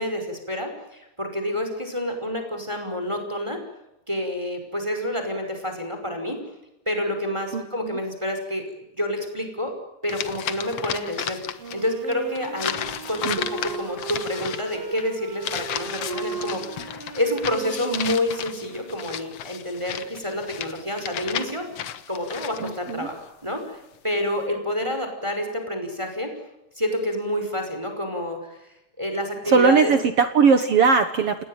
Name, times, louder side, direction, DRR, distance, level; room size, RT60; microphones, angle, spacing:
voice 1, 0.0-3.6 4.1-6.4 6.9-9.7 10.0-12.8 13.1-21.8 22.1-26.3 26.8-28.7 29.0-29.9, left 1 dB, 5° right, 5 dB, 5.0 m, -28 dB
voice 2, 7.5-8.0 13.2-13.4 22.6-23.1 29.5-31.4, right 5 dB, 90° right, 9 dB, 1.3 m, -19 dB
sound 1, 10.1-11.8 12.1-22.9, left 9 dB, 80° left, 1.4 m, -33 dB
Wind instrument woodwind instrument, 11.6-19.3, right 5 dB, 45° right, 2.7 m, -37 dB
29.5 x 18.5 x 9.1 m, 0.91 s
omnidirectional pair, 4.8 m